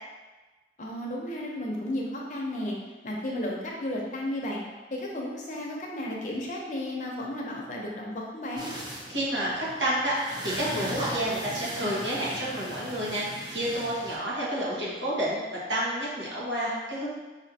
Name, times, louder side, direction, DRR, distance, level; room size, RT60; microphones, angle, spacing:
voice 1, 0.8-2.7 3.0-4.6 4.9-8.7, left 1 dB, 40° left, -2 dB, 0.7 m, -33 dB
sound 1, 8.6-14.2, equal, 20° right, 0.5 m, -37 dB
voice 2, 9.1-13.3 13.5-15.4 15.7-17.1, right 1 dB, 80° right, -7 dB, 1.3 m, -29 dB
5.2 x 2.7 x 2.7 m, 1.2 s
head